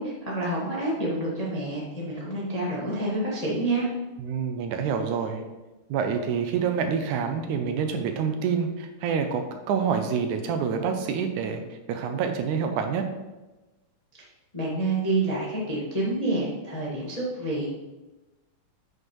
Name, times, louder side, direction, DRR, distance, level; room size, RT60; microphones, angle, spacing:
voice 1, 0.0-3.9 14.5-17.6, right 2 dB, 25° left, -6 dB, 0.8 m, -28 dB
voice 2, 4.2-5.4 5.9-11.6 11.9-13.1, right 6 dB, 85° right, 6 dB, 2.1 m, -27 dB
8.6 x 6.7 x 3.2 m, 1.1 s
omnidirectional pair, 3.6 m